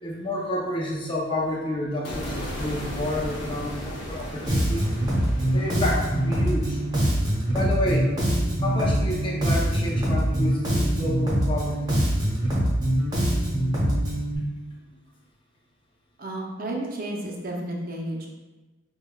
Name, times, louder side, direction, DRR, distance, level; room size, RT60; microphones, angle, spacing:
voice 1, 0.0-4.9 5.5-6.8 7.5-8.1 8.6-12.0, left 1 dB, 25° left, -3 dB, 0.5 m, -29 dB
sound 1, 2.0-8.3, equal, 65° left, 1.0 m, -36 dB
Bass guitar, 4.5-14.4, right 1 dB, 20° right, 0.8 m, -24 dB
voice 2, 16.2-18.3, right 1 dB, 45° right, -1 dB, 0.5 m, -32 dB
5.1 x 2.2 x 2.2 m, 1.2 s
head